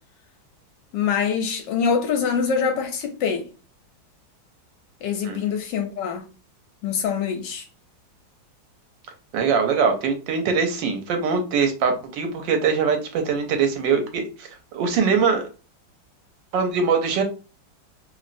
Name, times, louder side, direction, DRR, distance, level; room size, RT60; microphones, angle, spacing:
voice 1, 0.9-3.5 5.0-6.2 6.8-7.6, left 6 dB, 75° left, 1.1 m, -24 dB
voice 2, 9.3-15.4 16.5-17.2, right 5 dB, 75° right, 1.2 m, -22 dB
3.0 x 2.7 x 2.5 m
omnidirectional pair, 2.2 m